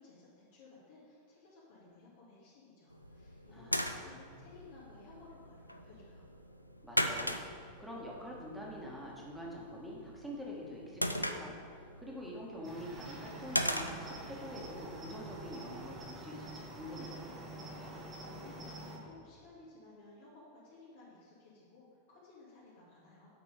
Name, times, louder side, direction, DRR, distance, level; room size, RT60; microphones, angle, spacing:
voice 1, 0.0-6.2 17.8-23.3, left 3 dB, 55° left, -7 dB, 2.2 m, -57 dB
sound 1, 2.9-16.0, equal, 90° left, 0.4 m, -40 dB
voice 2, 3.5-4.4 6.8-17.4, equal, 5° right, -4 dB, 2.0 m, -46 dB
Cricket, 12.6-19.0, right 2 dB, 20° right, 1.6 m, -47 dB
8.7 x 6.0 x 5.1 m, 2.3 s
figure-of-eight pair, 90°, 0 cm